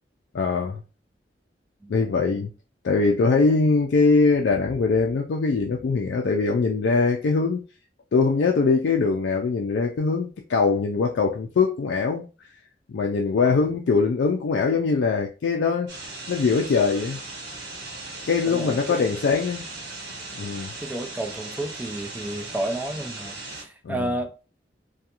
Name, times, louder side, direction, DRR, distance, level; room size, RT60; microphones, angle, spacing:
voice 1, 0.3-0.8 1.9-2.5 2.8-7.6 8.1-12.2 12.9-15.9 16.3-17.2 18.3-19.6 20.4-20.7 23.8-24.1, left 4 dB, 70° left, 0.4 m, -22 dB
sound 1, 15.9-23.6, right 2 dB, 65° right, 1.0 m, -38 dB
voice 2, 18.5-19.0 20.8-24.3, right 1 dB, 10° right, 0.4 m, -31 dB
2.4 x 2.3 x 2.8 m
head